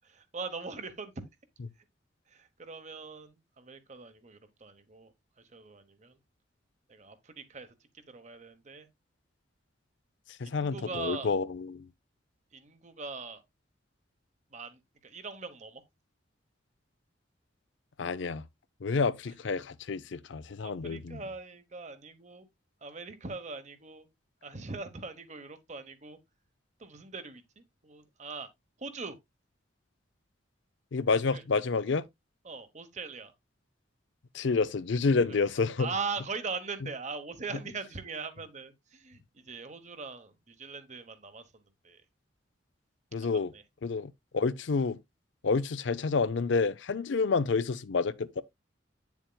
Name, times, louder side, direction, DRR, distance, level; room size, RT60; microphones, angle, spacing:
voice 1, 0.0-1.1 2.3-5.1 5.5-6.2 6.9-8.9 10.4-11.3 12.5-13.4 14.5-15.8 20.6-22.5 22.8-24.1 24.4-26.2 26.8-28.5 28.8-29.2 31.1-31.4 32.4-33.3 35.6-42.0 43.2-43.6, right 4 dB, 40° right, 1.0 m, -41 dB
voice 2, 10.4-11.9 18.0-18.4 18.8-21.2 30.9-32.0 34.3-35.9 43.1-43.5 43.8-45.0 45.4-48.4, left 4 dB, 70° left, 0.5 m, -29 dB
9.0 x 7.1 x 2.2 m
head